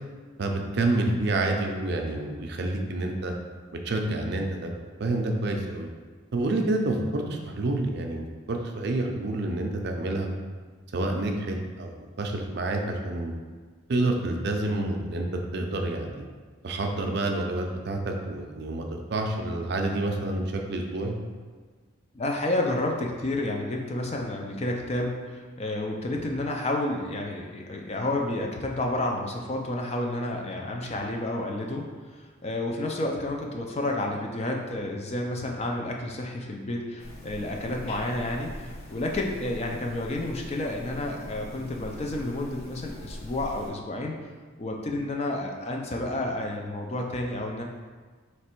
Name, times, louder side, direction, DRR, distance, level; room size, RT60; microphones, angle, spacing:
voice 1, 0.4-3.3 3.8-4.7 5.0-5.9 6.3-10.3 10.9-13.3 13.9-15.3 15.5-16.2 16.6-21.2, right 2 dB, 55° right, 2 dB, 0.4 m, -28 dB
voice 2, 22.1-44.2 44.6-47.6, left 1 dB, 30° left, 1 dB, 0.4 m, -30 dB
sound 1, 37.0-43.7, left 1 dB, 90° left, 0.7 m, -42 dB
3.2 x 3.0 x 4.4 m, 1.5 s
head